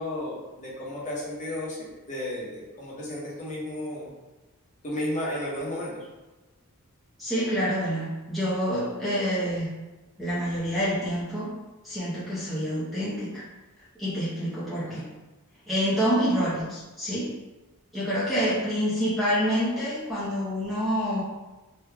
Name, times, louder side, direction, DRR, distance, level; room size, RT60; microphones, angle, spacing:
voice 1, 0.0-4.1 4.8-6.1 14.7-15.1 18.2-18.4, left 1 dB, 35° left, -6 dB, 0.9 m, -33 dB
voice 2, 7.2-9.7 10.2-11.5 11.8-13.4 14.0-15.0 15.7-17.3 17.9-21.2, equal, ahead, -9 dB, 0.6 m, -27 dB
3.3 x 2.2 x 3.2 m, 1.1 s
head